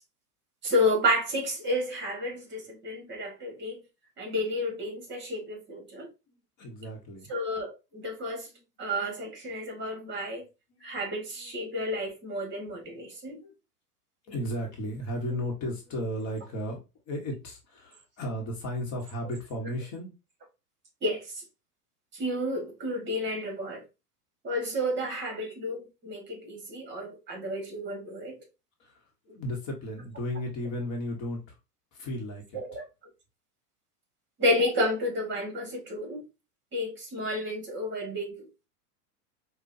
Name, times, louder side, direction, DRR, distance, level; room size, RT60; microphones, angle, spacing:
voice 1, 0.6-3.8 4.2-6.1 7.3-8.5 8.8-10.4 10.8-13.4 21.0-21.2 22.1-23.8 24.4-28.4 32.5-32.8 34.4-36.2 36.7-38.4, left 1 dB, 25° right, 1.7 m, -31 dB
voice 2, 6.6-7.3 10.7-11.0 11.4-11.5 12.4-12.6 12.9-13.5 14.3-20.1 28.8-31.6 31.9-32.6, equal, 35° left, 1.2 m, -35 dB
5.1 x 2.4 x 2.6 m
hypercardioid pair, 115°, 48 cm